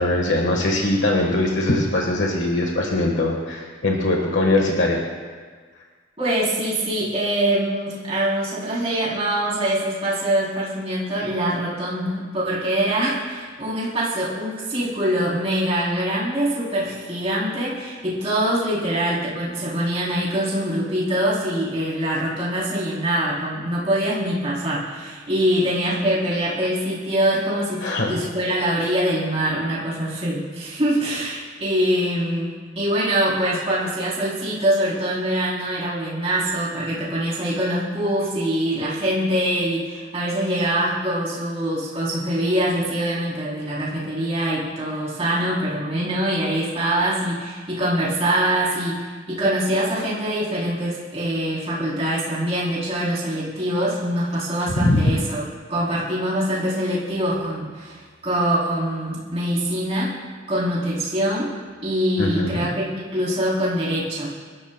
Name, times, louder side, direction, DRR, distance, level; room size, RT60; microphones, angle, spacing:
voice 1, 0.0-5.0 27.8-28.1 54.8-55.2 62.2-62.7, left 2 dB, 65° left, 0 dB, 1.4 m, -21 dB
voice 2, 6.2-60.1 60.5-61.6 61.8-64.3, right 1 dB, 30° right, -7 dB, 3.3 m, -24 dB
26.0 x 12.5 x 2.2 m, 1.6 s
head